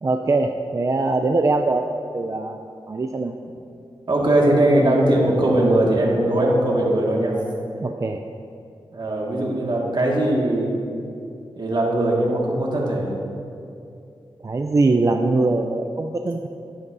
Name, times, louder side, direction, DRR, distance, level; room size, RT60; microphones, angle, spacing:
voice 1, 0.0-1.8 2.1-3.3 7.8-8.2 14.4-16.5, right 3 dB, 35° right, 4 dB, 0.4 m, -22 dB
voice 2, 4.1-7.4 8.9-10.7 11.6-13.1, right 1 dB, 55° right, -3 dB, 1.8 m, -20 dB
11.0 x 11.0 x 2.6 m, 2.5 s
wide cardioid pair, 80°, 9 cm